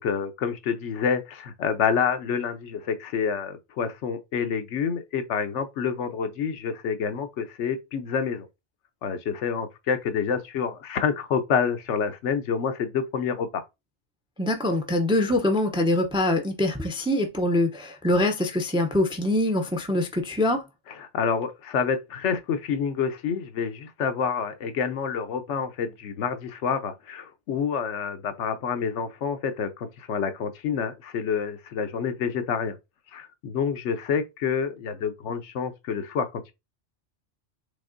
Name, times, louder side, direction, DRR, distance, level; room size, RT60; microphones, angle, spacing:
voice 1, 0.0-8.5 9.0-13.6 21.0-32.7 33.1-36.5, left 6 dB, 90° left, 1.0 m, -28 dB
voice 2, 14.4-20.6, left 1 dB, 10° right, 0.3 m, -24 dB
5.1 x 3.5 x 2.5 m
omnidirectional pair, 1.2 m